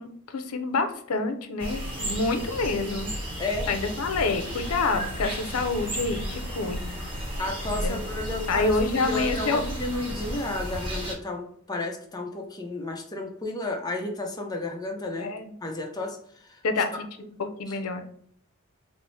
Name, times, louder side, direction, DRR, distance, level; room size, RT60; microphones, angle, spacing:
voice 1, 0.0-3.1 3.7-6.8 7.7-8.0 8.5-9.6 15.2-15.4 16.6-17.1 17.4-18.0, left 3 dB, 85° left, 8 dB, 0.5 m, -27 dB
sound 1, 1.6-11.1, equal, 25° right, 0.9 m, -33 dB
voice 2, 3.4-3.7 7.4-15.3 15.6-16.6 17.7-17.8, left 2 dB, 20° left, 1 dB, 0.5 m, -32 dB
4.0 x 2.0 x 3.1 m, 0.64 s
head